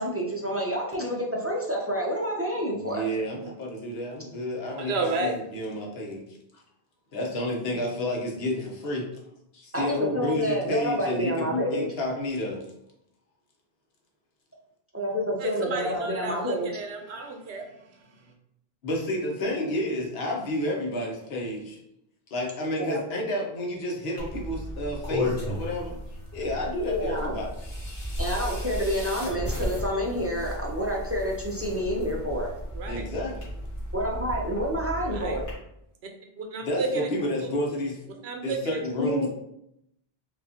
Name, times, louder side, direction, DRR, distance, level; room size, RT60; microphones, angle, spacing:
voice 1, 0.0-3.1 7.7-7.8 9.7-11.9 14.9-16.7 22.8-23.0 26.9-27.3 28.2-32.5 33.9-35.5 39.0-39.3, equal, 20° right, -2 dB, 0.4 m, -28 dB
voice 2, 2.7-6.2 7.1-9.1 9.5-12.6 18.8-21.8 22.3-26.0 26.3-27.5 32.9-33.5 36.6-38.0 38.4-39.3, left 1 dB, 75° left, 0 dB, 1.1 m, -30 dB
voice 3, 4.8-5.4 15.4-17.6 32.7-33.1 35.0-35.4 36.4-37.1 38.2-38.8, right 3 dB, 90° right, 3 dB, 0.9 m, -31 dB
sound 1, 24.2-35.5, left 1 dB, 55° left, 1.5 m, -34 dB
4.8 x 2.4 x 2.7 m, 0.79 s
omnidirectional pair, 1.1 m